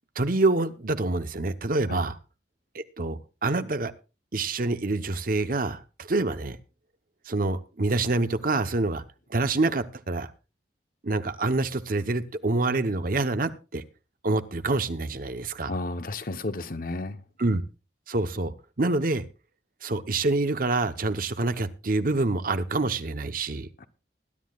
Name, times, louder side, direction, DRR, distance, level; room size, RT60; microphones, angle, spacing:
voice 1, 0.2-2.2 2.7-3.9 4.3-6.6 7.3-9.0 9.3-10.3 11.0-13.8 14.2-15.7 17.4-17.6 18.1-19.2 19.8-23.7, right 2 dB, 55° right, 11 dB, 0.9 m, -26 dB
voice 2, 15.7-17.2 23.8-23.9, left 2 dB, 55° left, 11 dB, 0.9 m, -32 dB
20.5 x 11.5 x 2.4 m, 0.30 s
head